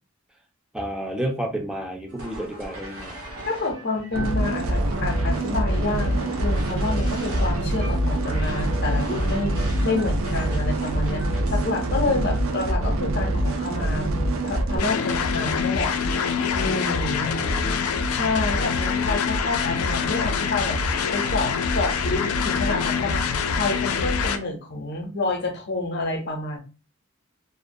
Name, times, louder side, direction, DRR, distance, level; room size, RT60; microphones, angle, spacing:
voice 1, 0.7-3.2 17.4-17.8, right 1 dB, 5° right, 2 dB, 0.4 m, -31 dB
sound 1, 2.1-11.7, right 1 dB, 90° right, 0.8 m, -39 dB
voice 2, 3.4-14.1 14.4-15.9 16.5-17.3 18.1-20.8 21.1-26.6, left 3 dB, 50° left, 3 dB, 0.7 m, -28 dB
sound 2, 4.1-14.8, right 1 dB, 65° right, 0.5 m, -24 dB
sound 3, 14.8-24.4, left 5 dB, 85° left, 0.4 m, -25 dB
2.5 x 2.1 x 2.5 m, 0.33 s
head